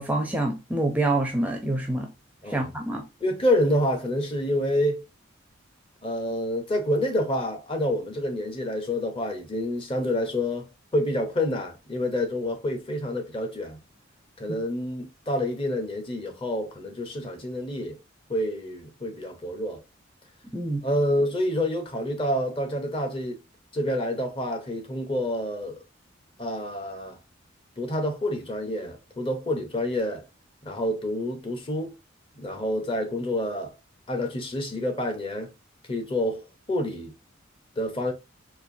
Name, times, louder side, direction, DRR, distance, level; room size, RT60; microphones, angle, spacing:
voice 1, 0.0-2.1 2.5-3.0 14.5-14.6 20.5-20.8, right 2 dB, 10° right, 0.4 m, -26 dB
voice 2, 3.2-5.0 6.0-13.8 14.4-18.0 18.3-19.8 20.8-23.4 23.7-25.8 26.4-27.2 27.8-30.2 30.6-31.9 32.4-33.7 34.1-35.5 35.9-37.1 37.8-38.1, left 1 dB, 25° left, 0.7 m, -28 dB
4.2 x 2.5 x 2.6 m
head